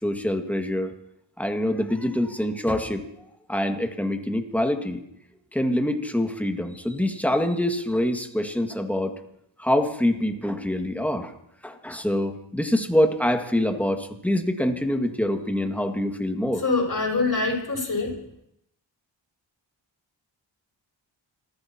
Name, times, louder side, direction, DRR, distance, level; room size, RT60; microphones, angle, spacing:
voice 1, 0.0-0.9 1.4-5.0 5.5-9.1 9.6-11.3 11.6-16.6, left 1 dB, 5° left, 5 dB, 2.0 m, -25 dB
voice 2, 16.6-18.2, left 3 dB, 45° left, -2 dB, 7.3 m, -24 dB
29.5 x 15.5 x 3.0 m, 0.77 s
cardioid pair, 50°, 47 cm